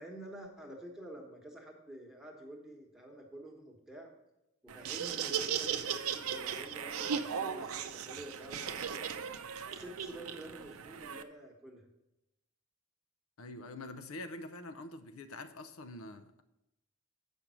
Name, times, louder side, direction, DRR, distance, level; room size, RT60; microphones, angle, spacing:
voice 1, 0.0-4.1 4.6-9.1 9.6-11.9, right 1 dB, ahead, 1.1 m, -49 dB
Laughter, 4.7-11.2, right 7 dB, 90° right, 0.5 m, -37 dB
voice 2, 13.4-16.4, left 2 dB, 85° left, 0.6 m, -45 dB
7.3 x 5.3 x 6.2 m
head